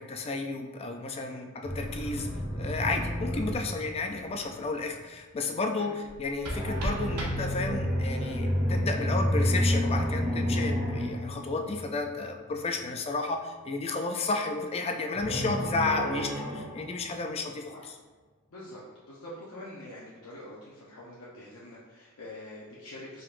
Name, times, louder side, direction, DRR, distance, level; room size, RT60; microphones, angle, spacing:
voice 1, 0.0-2.3 2.5-18.0, left 3 dB, 25° left, 4 dB, 0.4 m, -32 dB
voice 2, 1.1-1.5 4.1-4.3 5.8-5.9 17.7-17.9 18.5-18.8 19.1-23.2, left 1 dB, 65° left, -7 dB, 0.8 m, -45 dB
sound 1, 1.6-4.7 6.5-12.2 15.1-17.6, equal, ahead, 1.1 m, -30 dB
sound 2, 6.0-8.0, equal, 90° right, 0.9 m, -37 dB
4.7 x 3.8 x 2.5 m, 1.3 s
head